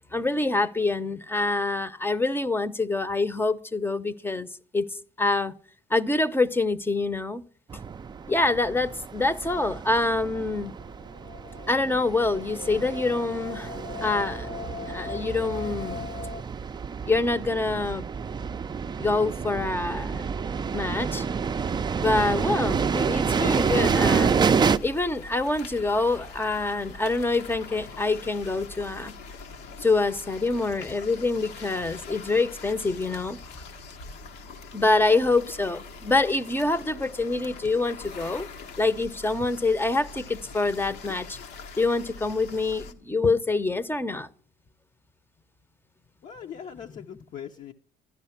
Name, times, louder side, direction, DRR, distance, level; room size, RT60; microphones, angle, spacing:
voice 1, 0.1-4.5 4.7-5.5 5.9-7.4 8.3-10.7 11.7-13.7 14.0-14.5 14.9-16.1 17.1-18.0 19.0-20.2 20.7-21.2 22.0-24.3 24.8-29.1 29.8-33.4 34.7-38.5 38.8-41.4 41.8-44.3, left 3 dB, 15° left, 0.7 m, -26 dB
sound 1, 7.7-24.8, right 6 dB, 25° right, 0.5 m, -28 dB
sound 2, 10.2-16.4, left 6 dB, 65° left, 1.0 m, -40 dB
sound 3, 23.6-42.9, left 4 dB, 85° left, 1.2 m, -43 dB
voice 2, 46.2-47.7, left 8 dB, 50° left, 0.7 m, -40 dB
12.0 x 10.5 x 5.8 m
cardioid pair, 110°, 17 cm